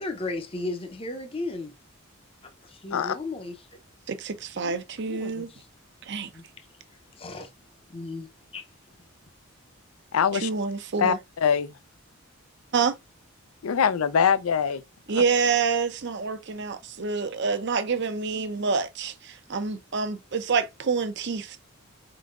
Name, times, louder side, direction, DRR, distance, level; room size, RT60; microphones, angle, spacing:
voice 1, 0.0-1.7 2.6-3.5 4.6-4.7 5.1-5.5 6.3-6.4 7.2-7.5 7.9-8.6, left 2 dB, 25° left, 0.6 m, -35 dB
voice 2, 4.1-5.5 6.0-6.3 10.3-11.2 12.7-13.0 15.1-21.6, right 5 dB, 55° right, 0.6 m, -27 dB
voice 3, 10.1-10.5 11.0-11.2 11.4-11.7 13.6-14.8, left 7 dB, 80° left, 0.5 m, -22 dB
4.6 x 3.9 x 2.4 m
head